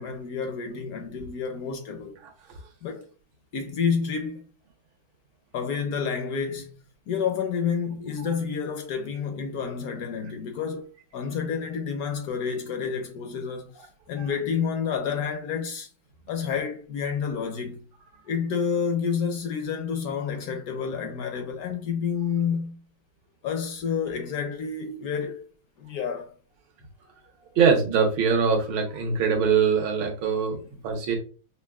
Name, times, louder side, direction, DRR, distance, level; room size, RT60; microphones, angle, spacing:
voice 1, 0.0-2.1 2.8-3.1 3.5-4.5 5.5-6.7 7.1-15.9 16.3-17.8 18.3-22.8 23.4-25.5 25.8-26.3, left 6 dB, 70° left, 0.8 m, -29 dB
voice 2, 27.5-31.2, right 6 dB, 90° right, 1.7 m, -23 dB
5.5 x 2.2 x 2.3 m
omnidirectional pair, 2.1 m